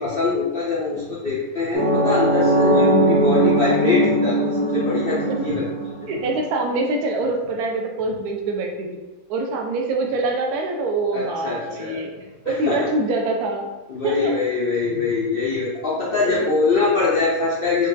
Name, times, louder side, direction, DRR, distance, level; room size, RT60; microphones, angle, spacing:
voice 1, 0.0-5.7 6.0-6.1 11.1-12.0 12.5-12.9 13.9-17.9, left 4 dB, 85° left, -6 dB, 0.5 m, -23 dB
sound 1, 1.7-6.5, right 1 dB, 55° right, 1.1 m, -19 dB
voice 2, 1.8-2.1 6.1-9.0 9.3-12.1 12.5-13.7 14.0-14.3 16.2-16.6, right 2 dB, 80° right, 2 dB, 1.1 m, -25 dB
4.7 x 2.2 x 2.5 m, 1.1 s
omnidirectional pair, 1.7 m